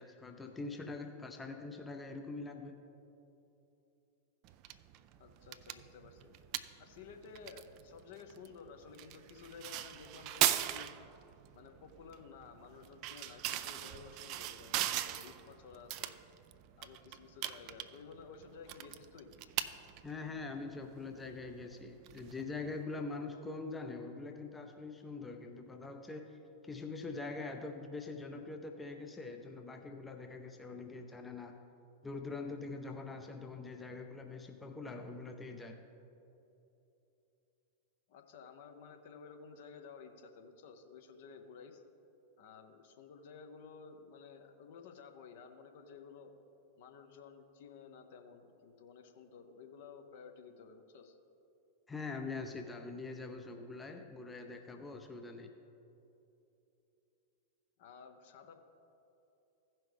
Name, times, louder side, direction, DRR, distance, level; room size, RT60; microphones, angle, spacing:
voice 1, 0.0-2.8 20.0-26.4 26.6-31.6 32.0-35.8 51.9-55.5, left 3 dB, 10° left, 4 dB, 0.6 m, -43 dB
sound 1, 4.4-22.8, right 13 dB, 40° right, 0.4 m, -40 dB
voice 2, 5.2-6.3 6.8-10.9 11.5-16.1 16.8-19.3 38.1-41.8 42.4-46.4 46.8-51.2 57.8-58.6, left 5 dB, 55° left, 5 dB, 0.9 m, -53 dB
16.0 x 5.6 x 3.5 m, 2.9 s
figure-of-eight pair, 90°, 0 cm